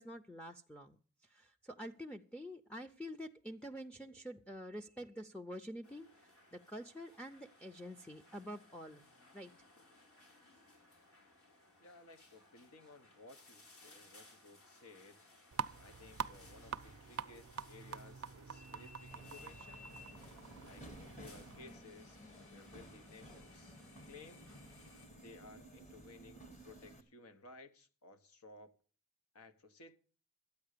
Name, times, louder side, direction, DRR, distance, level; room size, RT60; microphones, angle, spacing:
voice 1, 0.0-9.1 9.3-9.5, equal, 5° left, 0.5 m, -48 dB
sound 1, 5.8-25.1, left 2 dB, 65° left, 5.9 m, -62 dB
voice 2, 11.8-15.2 15.8-19.9 20.6-23.8 24.1-24.5 25.2-28.7 29.3-30.0, left 3 dB, 85° left, 1.2 m, -58 dB
sound 2, 15.5-21.6, right 7 dB, 80° right, 0.5 m, -46 dB
Subway metro underground, 19.1-27.0, right 1 dB, 30° left, 1.4 m, -55 dB
13.0 x 8.8 x 6.7 m
head